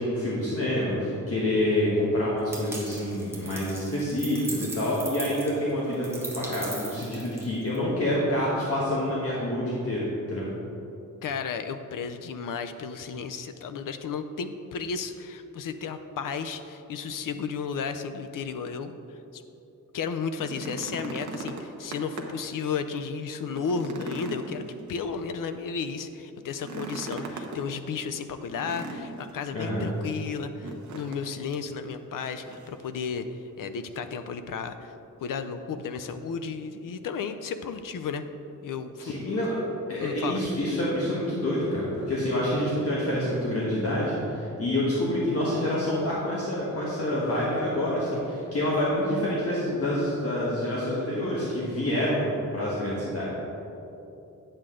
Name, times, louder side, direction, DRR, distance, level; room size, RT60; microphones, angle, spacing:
voice 1, 0.0-10.4 29.5-29.9 39.0-39.6 39.9-53.3, left 1 dB, 50° left, -6 dB, 1.4 m, -27 dB
sound 1, 2.5-7.8, right 2 dB, 10° right, 1.0 m, -39 dB
voice 2, 11.2-19.4 19.9-24.6 24.9-33.3 33.6-34.9 35.2-38.2 38.6-39.2 40.0-40.4, left 5 dB, 90° left, 9 dB, 0.5 m, -33 dB
sound 2, 20.2-22.5 22.9-23.0 23.4-25.3 26.5-27.6 28.5-29.4 30.6-31.2 31.5-31.7 32.2-32.8 33.9-34.0, right 3 dB, 65° right, 0.9 m, -39 dB
8.8 x 7.7 x 3.7 m, 2.9 s
wide cardioid pair, 170°, 32 cm